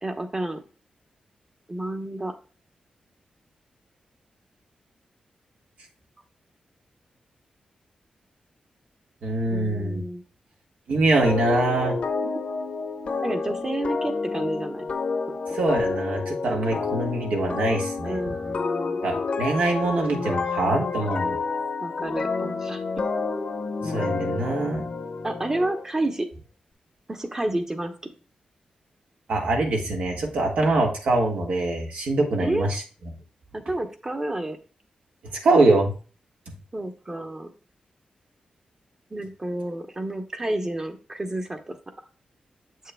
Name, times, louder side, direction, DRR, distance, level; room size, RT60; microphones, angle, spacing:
voice 1, 0.0-0.6 1.7-2.3 9.5-10.2 13.2-14.9 18.0-19.0 21.8-22.8 25.2-26.3 27.1-27.9 32.4-32.8 33.5-34.6 36.7-37.5 39.1-41.8, right 1 dB, 20° right, 6 dB, 0.9 m, -30 dB
voice 2, 9.2-10.0 10.9-11.9 15.5-18.4 19.0-21.4 23.8-24.8 29.3-32.8 35.4-35.9, right 2 dB, 85° right, 0 dB, 1.6 m, -23 dB
sound 1, 11.2-25.8, left 4 dB, 55° left, 0.8 m, -29 dB
7.3 x 6.5 x 2.2 m, 0.36 s
wide cardioid pair, 110°, 3 cm